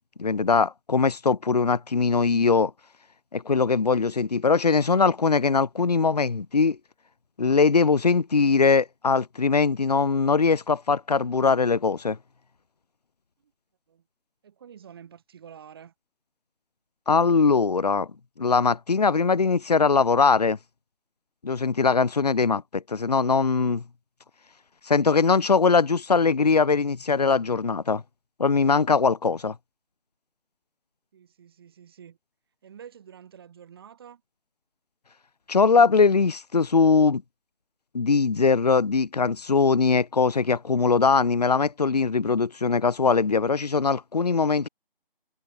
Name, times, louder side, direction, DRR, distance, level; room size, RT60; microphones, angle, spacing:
voice 1, 0.2-2.7 3.3-6.8 7.4-12.2 17.1-18.1 18.4-20.6 21.4-23.8 24.9-28.0 28.4-29.6 35.5-37.2 37.9-44.7, left 4 dB, 45° left, 0.9 m, -21 dB
voice 2, 14.4-15.9 31.1-32.2 32.6-34.2, right 8 dB, 25° right, 6.5 m, -48 dB
figure-of-eight pair, 165°, 29 cm